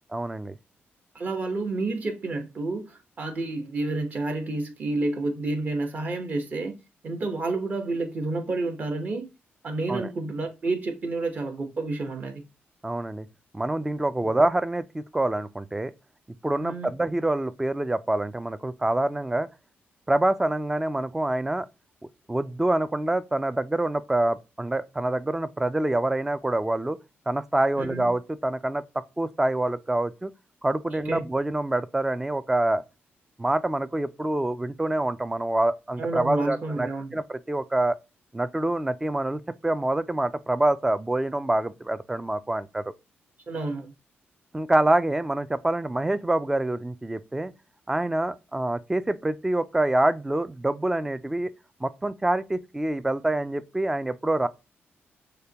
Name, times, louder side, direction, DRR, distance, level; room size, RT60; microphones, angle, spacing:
voice 1, 0.1-0.6 9.9-10.1 12.8-13.3 13.5-15.9 16.4-19.5 20.1-21.7 22.3-27.0 27.3-30.3 30.6-32.8 33.4-38.0 38.3-42.8 44.5-47.5 47.9-51.5 51.8-54.5, right 1 dB, 10° right, 0.3 m, -26 dB
voice 2, 1.1-6.7 7.0-9.2 9.6-12.4 16.6-16.9 27.8-28.1 31.0-31.3 36.0-37.2 43.5-43.9, right 2 dB, 40° right, 1.0 m, -30 dB
6.6 x 2.2 x 2.8 m
cardioid pair, 115°, 4 cm